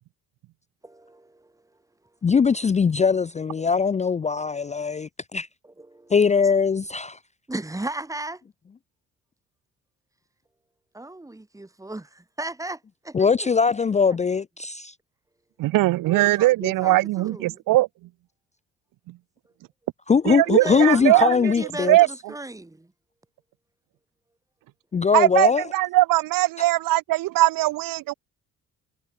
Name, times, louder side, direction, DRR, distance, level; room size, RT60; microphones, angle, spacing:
voice 1, 0.8-1.5 5.6-6.1 7.5-8.4 10.9-13.5 14.1-14.2 16.1-17.6 20.4-22.9, right 2 dB, 10° right, 2.1 m, -36 dB
voice 2, 2.2-5.5 6.1-7.2 13.1-14.9 20.1-22.0 24.9-25.6, left 5 dB, 20° left, 0.5 m, -21 dB
voice 3, 15.6-17.9 20.3-21.5 21.9-22.1 25.1-28.1, right 17 dB, 90° right, 1.0 m, -20 dB
cardioid pair, 100°, 32 cm